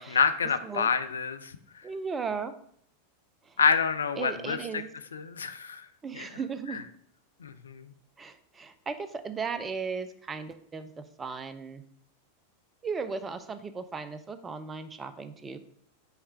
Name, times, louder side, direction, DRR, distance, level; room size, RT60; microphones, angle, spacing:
voice 1, 0.0-1.5 3.6-4.6 5.1-5.9 6.2-6.3 7.4-7.9, left 5 dB, 70° left, 11 dB, 0.4 m, -27 dB
voice 2, 1.8-2.5 3.4-3.6 4.2-4.9 6.0-6.8 8.2-11.8 12.8-15.6, right 5 dB, 15° right, 11 dB, 0.5 m, -36 dB
5.7 x 3.2 x 5.7 m, 0.65 s
figure-of-eight pair, 90°, 0 cm